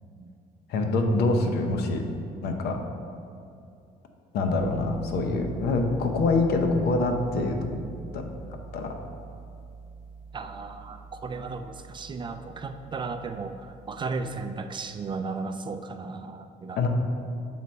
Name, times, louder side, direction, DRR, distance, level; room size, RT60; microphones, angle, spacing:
voice 1, 0.7-2.0 2.4-2.8 4.3-7.8 8.1-8.3 8.7-8.9 16.8-16.9, left 3 dB, 70° left, 4 dB, 0.7 m, -25 dB
sound 1, 4.6-14.4, right 2 dB, 85° left, 1.1 m, -42 dB
voice 2, 10.3-16.8, right 4 dB, 30° right, 8 dB, 0.3 m, -35 dB
7.3 x 4.0 x 4.3 m, 2.4 s
cardioid pair, 110°, 17 cm